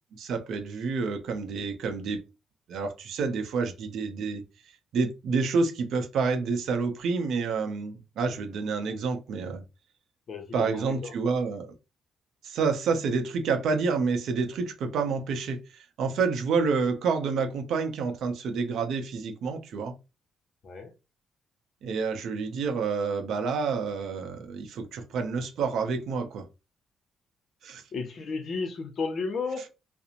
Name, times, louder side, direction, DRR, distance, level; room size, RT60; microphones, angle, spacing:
voice 1, 0.2-2.2 2.7-4.4 4.9-9.6 10.5-11.7 12.4-19.9 21.8-26.4 27.6-27.8, right 4 dB, 75° right, 0.6 m, -28 dB
voice 2, 10.3-11.1 20.6-20.9 27.9-29.7, left 4 dB, 55° left, 0.7 m, -33 dB
2.5 x 2.0 x 2.8 m
cardioid pair, 105°, 0 cm